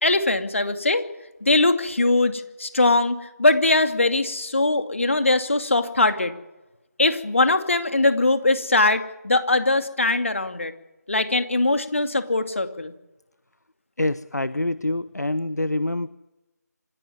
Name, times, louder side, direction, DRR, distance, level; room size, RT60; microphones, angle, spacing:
voice 1, 0.0-1.0 1.4-6.3 7.0-10.7 11.1-12.9, left 2 dB, 45° left, 8 dB, 2.5 m, -21 dB
voice 2, 14.0-16.1, left 2 dB, 70° left, 14 dB, 1.1 m, -25 dB
25.5 x 16.5 x 9.6 m, 1.0 s
figure-of-eight pair, 165°, 9 cm